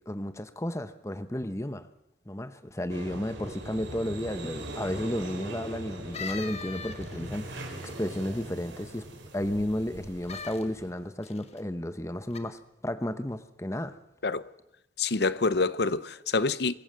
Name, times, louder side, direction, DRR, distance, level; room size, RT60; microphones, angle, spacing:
voice 1, 0.1-1.9 2.3-9.0 9.3-14.0, left 1 dB, 15° left, 0.9 m, -33 dB
sound 1, 2.9-10.9, right 1 dB, 90° right, 4.2 m, -41 dB
sound 2, 6.1-7.4 10.2-10.6 11.2-11.6 12.3-12.4, left 5 dB, 35° left, 1.4 m, -39 dB
voice 2, 15.0-16.7, left 3 dB, 60° left, 0.7 m, -26 dB
24.0 x 14.5 x 7.6 m
head